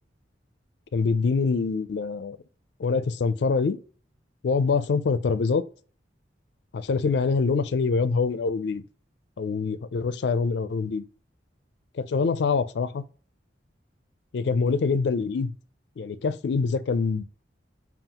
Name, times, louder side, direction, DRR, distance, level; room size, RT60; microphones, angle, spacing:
voice 1, 0.9-2.4 2.8-3.8 4.4-5.6 6.7-8.8 9.4-11.0 11.9-13.0 14.3-15.5 16.0-17.2, left 4 dB, 70° left, 0.4 m, -25 dB
5.5 x 2.4 x 2.8 m
head